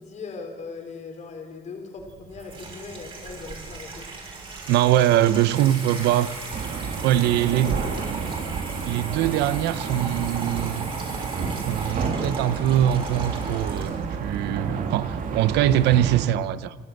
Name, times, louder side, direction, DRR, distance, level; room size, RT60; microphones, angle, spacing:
voice 1, 0.0-4.1, left 4 dB, 45° left, 4.6 m, -39 dB
Water tap faucet / Sink (filling or washing), 2.0-14.2, right 3 dB, 30° right, 6.4 m, -36 dB
voice 2, 4.7-6.3 7.0-7.8 8.8-10.9 11.6-13.9 14.2-16.8, right 12 dB, 85° right, 1.0 m, -22 dB
sound 1, 6.5-16.3, right 5 dB, 55° right, 2.6 m, -30 dB
29.0 x 12.0 x 8.0 m
cardioid pair, 110°, 17 cm